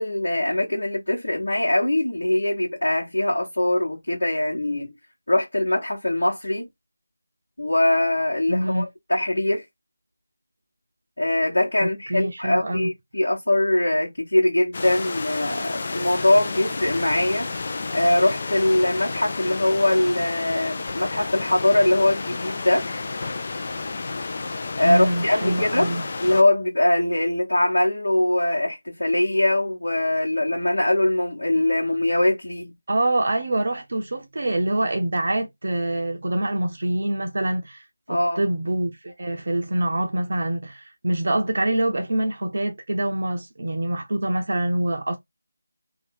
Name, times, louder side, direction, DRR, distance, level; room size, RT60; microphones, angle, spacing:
voice 1, 0.0-4.9 5.3-6.7 7.6-9.6 11.2-17.5 17.9-22.9 24.8-25.9 26.2-32.7 38.1-38.4, left 1 dB, 70° left, 1.0 m, -22 dB
voice 2, 8.5-8.9 11.8-12.9 24.8-26.1 32.9-45.2, right 1 dB, 55° right, 0.6 m, -25 dB
sound 1, 14.7-26.4, left 3 dB, 40° left, 0.4 m, -31 dB
2.7 x 2.3 x 3.3 m
figure-of-eight pair, 165°, 0 cm